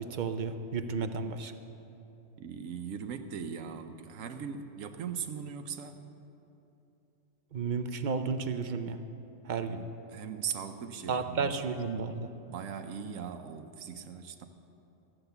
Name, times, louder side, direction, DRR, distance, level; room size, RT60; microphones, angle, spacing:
voice 1, 0.0-1.5 7.5-9.0 9.4-9.8 11.1-12.3, right 5 dB, 50° right, 8 dB, 0.6 m, -32 dB
voice 2, 2.4-6.0 9.7-11.5 12.5-14.5, right 7 dB, 90° right, 7 dB, 1.1 m, -39 dB
14.0 x 8.9 x 6.8 m, 2.9 s
omnidirectional pair, 1.3 m